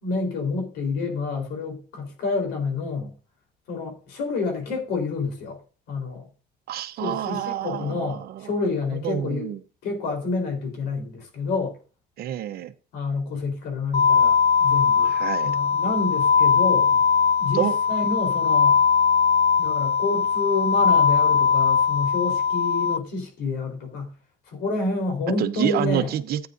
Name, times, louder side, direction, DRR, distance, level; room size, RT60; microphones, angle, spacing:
voice 1, 0.0-3.1 3.7-5.6 5.9-6.3 7.0-9.5 9.8-11.8 12.9-15.1 15.4-17.0 17.4-18.8 19.6-24.1 24.5-26.1, left 3 dB, 90° left, 4.0 m, -28 dB
voice 2, 6.7-8.5 9.0-9.6 12.2-12.7 15.0-15.5 17.5-17.8 25.4-26.5, right 11 dB, 65° right, 0.9 m, -28 dB
sound 1, 13.9-23.0, left 6 dB, 40° left, 0.5 m, -20 dB
14.5 x 8.9 x 2.6 m
cardioid pair, 110°, 17 cm